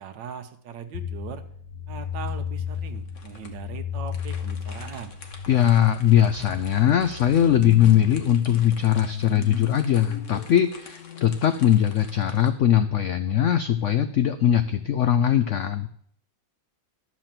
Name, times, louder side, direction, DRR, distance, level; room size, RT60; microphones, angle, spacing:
voice 1, 0.0-1.4 1.9-5.2, right 8 dB, 90° right, 7 dB, 1.5 m, -39 dB
sound 1, 0.9-11.3, left 7 dB, 65° left, 1.2 m, -34 dB
sound 2, 1.9-12.5, left 4 dB, 50° left, 1.4 m, -48 dB
voice 2, 5.5-15.9, left 10 dB, 90° left, 10 dB, 0.6 m, -20 dB
11.5 x 4.9 x 7.4 m, 0.63 s
omnidirectional pair, 1.9 m